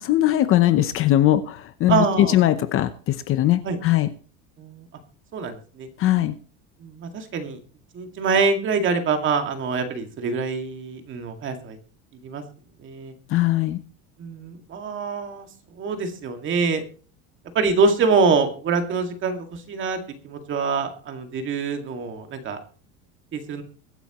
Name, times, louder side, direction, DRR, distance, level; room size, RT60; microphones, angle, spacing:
voice 1, 0.0-4.1 6.0-6.3 13.3-13.8, left 13 dB, 35° left, 11 dB, 0.8 m, -20 dB
voice 2, 1.9-2.4 3.6-3.8 4.6-4.9 5.3-5.9 6.8-7.6 7.9-11.8 12.2-12.4 12.8-13.1 14.2-15.5 15.8-16.8 17.5-20.0 20.2-22.6 23.3-23.6, right 4 dB, 30° right, 6 dB, 2.1 m, -24 dB
23.5 x 8.9 x 3.0 m, 0.40 s
cardioid pair, 155°, 37 cm